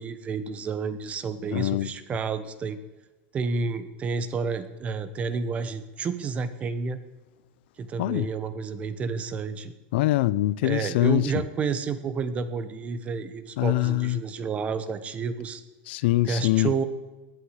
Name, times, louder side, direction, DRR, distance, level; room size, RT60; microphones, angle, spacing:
voice 1, 0.0-2.8 3.3-7.0 7.8-9.7 10.6-15.6 16.2-16.8, right 5 dB, 20° right, 1.0 m, -30 dB
voice 2, 1.5-1.9 8.0-8.3 9.9-11.2 13.6-14.2 15.9-16.7, left 17 dB, 75° left, 0.5 m, -23 dB
18.5 x 11.5 x 4.9 m
supercardioid pair, 165°, 6 cm